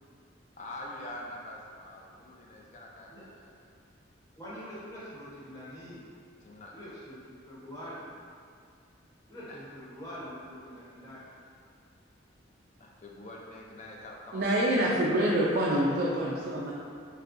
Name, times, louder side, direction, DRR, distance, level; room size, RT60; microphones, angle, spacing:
voice 1, 0.6-3.5 6.4-6.7 9.5-9.6 12.8-14.9, left 1 dB, 40° left, -1 dB, 0.5 m, -45 dB
voice 2, 4.4-6.0 6.7-8.0 9.3-11.2, equal, 20° left, -11 dB, 1.2 m, -44 dB
voice 3, 14.3-16.7, right 1 dB, 50° right, -5 dB, 0.4 m, -26 dB
6.3 x 2.2 x 2.6 m, 2.3 s
head